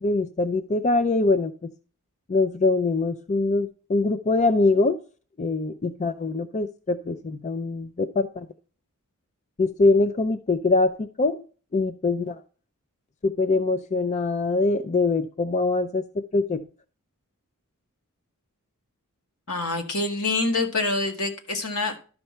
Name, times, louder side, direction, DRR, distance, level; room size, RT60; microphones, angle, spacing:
voice 1, 0.0-1.7 2.3-5.0 5.4-8.5 9.6-11.4 11.7-12.4 13.2-16.0 16.3-16.6, left 3 dB, 30° left, 12 dB, 0.4 m, -23 dB
voice 2, 19.5-22.0, left 3 dB, 75° left, 4 dB, 1.8 m, -26 dB
12.0 x 5.6 x 4.3 m, 0.39 s
head